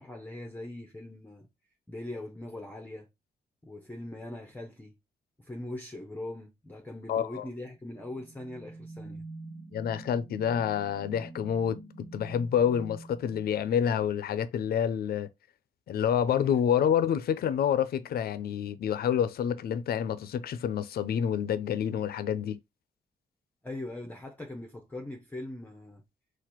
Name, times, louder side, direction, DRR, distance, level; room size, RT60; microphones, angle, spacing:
voice 1, 0.0-1.5 1.9-3.1 3.6-5.0 5.4-9.2 23.6-26.0, left 1 dB, 10° left, 0.6 m, -41 dB
voice 2, 7.1-7.5 9.7-15.3 15.9-22.6, left 8 dB, 75° left, 0.5 m, -28 dB
sound 1, 7.7-14.3, right 2 dB, 30° right, 1.2 m, -47 dB
4.1 x 2.5 x 4.4 m
wide cardioid pair, 130°, 16 cm